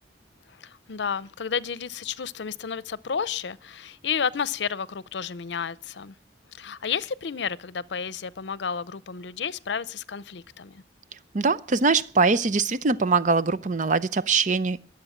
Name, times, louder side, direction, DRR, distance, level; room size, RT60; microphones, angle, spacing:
voice 1, 0.5-6.1 6.5-10.8, left 6 dB, 80° left, 0.6 m, -31 dB
voice 2, 11.3-14.9, right 4 dB, 45° right, 0.6 m, -22 dB
21.5 x 7.8 x 7.1 m
head